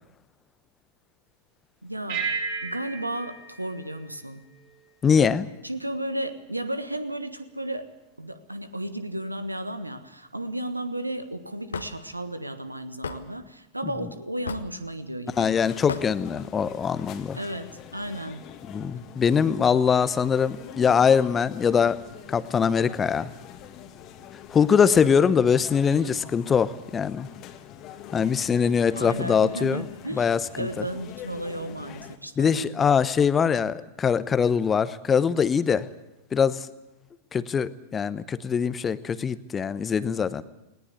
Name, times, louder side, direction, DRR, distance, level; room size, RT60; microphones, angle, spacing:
voice 1, 1.8-2.3 2.6-4.5 5.6-7.9 8.2-15.5 17.3-18.5 29.0-32.8, right 1 dB, 85° right, 12 dB, 1.4 m, -34 dB
sound 1, 2.1-4.9, right 5 dB, 55° right, 7.7 m, -34 dB
voice 2, 5.0-5.5 15.4-17.4 18.7-22.0 22.3-23.3 24.5-27.3 28.1-29.8 30.1-30.7 32.4-35.9 36.3-36.7 37.3-40.4, left 6 dB, 20° left, 16 dB, 0.9 m, -22 dB
Hammer / Wood, 11.7-11.9 13.0-13.2 14.5-14.7 15.9-16.1, left 6 dB, 70° left, 1.3 m, -32 dB
sound 2, 15.3-32.2, left 10 dB, 35° left, 1.9 m, -45 dB
20.0 x 18.5 x 8.3 m, 0.99 s
figure-of-eight pair, 90°, 0 cm